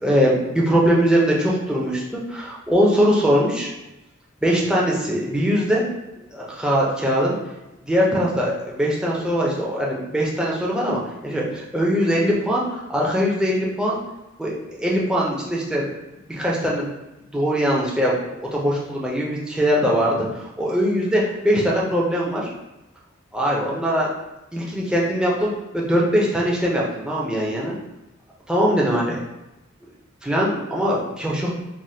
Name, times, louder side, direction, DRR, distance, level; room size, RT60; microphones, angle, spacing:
voice 1, 0.0-3.7 4.4-5.8 6.3-7.4 7.9-14.0 14.4-14.5 14.8-15.9 16.3-16.9 17.3-18.2 18.5-22.5 23.3-24.1 24.5-27.8 28.5-29.2 30.2-31.5, equal, 5° right, -4 dB, 0.5 m, -21 dB
3.3 x 2.1 x 2.7 m, 0.94 s
head